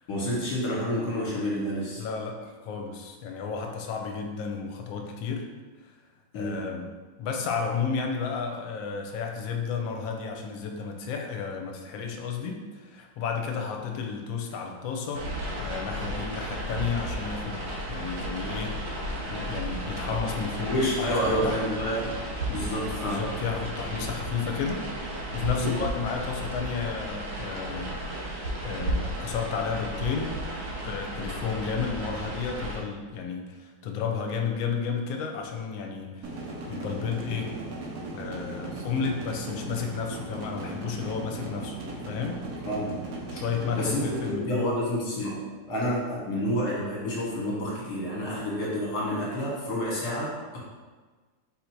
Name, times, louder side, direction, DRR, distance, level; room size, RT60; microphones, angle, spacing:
voice 1, 0.1-2.0 6.3-6.7 20.7-22.1 22.5-23.3 25.6-25.8 38.7-39.1 42.7-43.0 43.8-50.6, equal, 55° left, -5 dB, 1.8 m, -29 dB
voice 2, 2.0-5.5 5.8-5.9 6.3-6.9 7.2-15.2 15.6-17.6 17.9-21.6 23.0-30.4 30.8-37.5 38.1-41.8 42.1-42.4 43.3-44.7, left 6 dB, 80° left, 3 dB, 1.4 m, -32 dB
sound 1, 15.1-32.8, right 1 dB, 90° right, 1.9 m, -34 dB
sound 2, 36.2-44.3, right 2 dB, 65° right, 0.9 m, -37 dB
4.1 x 2.8 x 4.4 m, 1.4 s
omnidirectional pair, 2.1 m